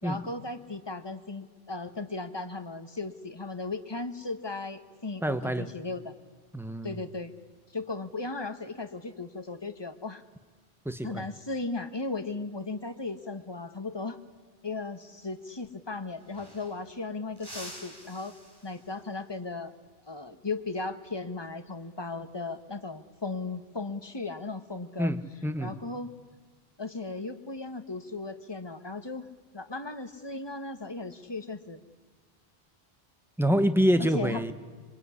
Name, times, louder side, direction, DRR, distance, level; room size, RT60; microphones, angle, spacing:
voice 1, 0.0-6.2 6.8-7.3 7.7-10.2 11.0-14.2 14.6-18.3 18.6-19.7 20.1-25.1 25.6-26.1 26.8-29.3 29.5-31.8 34.0-34.5, left 3 dB, 25° left, 8 dB, 1.5 m, -36 dB
voice 2, 5.2-5.7 6.5-7.0 10.8-11.2 25.0-25.7 33.4-34.5, equal, ahead, 10 dB, 1.2 m, -26 dB
sound 1, 15.7-15.8 16.0-17.0 17.4-19.1 21.6-21.9 23.3-23.8, equal, 20° right, 4.3 m, -48 dB
26.0 x 23.0 x 9.8 m, 1.4 s
omnidirectional pair, 1.0 m